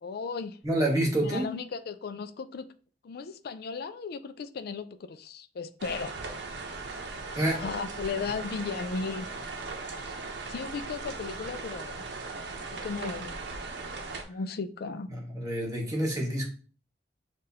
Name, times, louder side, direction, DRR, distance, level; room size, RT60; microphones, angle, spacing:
voice 1, 0.0-0.6 1.2-2.7 3.0-6.1 7.5-9.3 10.5-12.0 12.7-13.4 14.2-15.1, left 5 dB, 60° left, 0.4 m, -36 dB
voice 2, 0.6-1.5 7.3-7.6 15.1-16.5, right 1 dB, 20° right, 1.3 m, -28 dB
sound 1, 5.8-14.2, right 3 dB, 70° right, 0.7 m, -38 dB
6.5 x 2.5 x 2.8 m
head